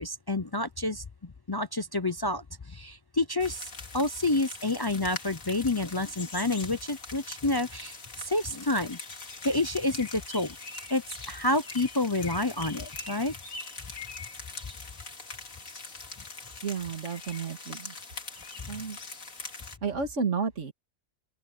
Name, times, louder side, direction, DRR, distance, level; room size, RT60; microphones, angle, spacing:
voice 1, 0.0-9.0 9.4-10.5 10.9-13.3, left 2 dB, 35° left, 0.3 m, -29 dB
sound 1, 3.4-19.8, left 3 dB, 85° left, 2.9 m, -42 dB
voice 2, 16.6-17.9 18.7-19.0 19.8-20.7, right 5 dB, 65° right, 2.4 m, -31 dB
open air
omnidirectional pair, 1.4 m